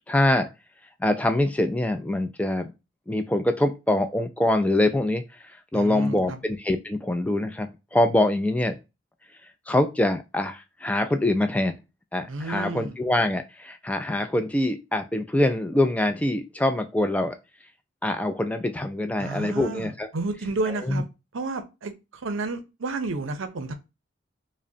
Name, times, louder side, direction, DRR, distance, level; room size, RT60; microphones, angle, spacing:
voice 1, 0.1-0.5 1.0-2.7 3.1-8.8 9.7-11.8 12.1-17.4 18.0-20.1 20.9-21.0, left 1 dB, 5° left, 0.3 m, -24 dB
voice 2, 5.7-6.4 12.3-13.0 19.2-21.0 21.3-23.7, right 3 dB, 75° right, 0.6 m, -31 dB
5.0 x 2.1 x 2.6 m
head